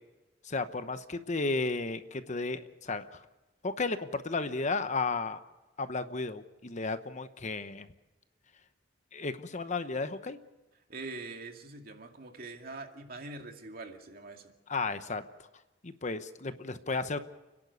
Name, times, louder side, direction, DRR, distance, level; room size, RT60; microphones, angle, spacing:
voice 1, 0.4-3.2 3.6-5.4 5.8-7.9 9.1-10.4 14.7-15.2 15.8-17.2, left 3 dB, 40° left, 11 dB, 0.9 m, -33 dB
voice 2, 10.9-14.4, right 3 dB, 55° right, 4 dB, 2.3 m, -43 dB
30.0 x 11.0 x 8.1 m, 1.1 s
head